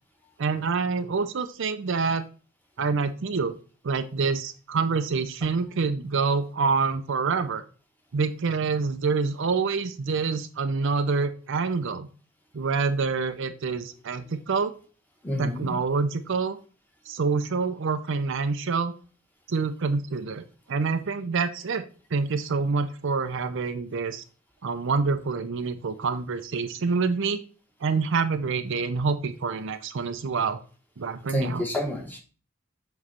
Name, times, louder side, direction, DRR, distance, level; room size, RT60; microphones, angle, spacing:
voice 1, 0.4-2.2 2.8-3.5 3.8-7.6 8.1-12.1 12.5-14.7 15.4-16.6 17.1-18.9 19.5-21.8 22.1-24.2 24.6-27.4 27.8-30.6 31.0-31.6, right 4 dB, 65° right, 9 dB, 0.5 m, -26 dB
voice 2, 15.2-15.7 31.3-32.2, left 1 dB, 10° left, 1 dB, 1.4 m, -29 dB
7.3 x 3.2 x 4.3 m, 0.37 s
head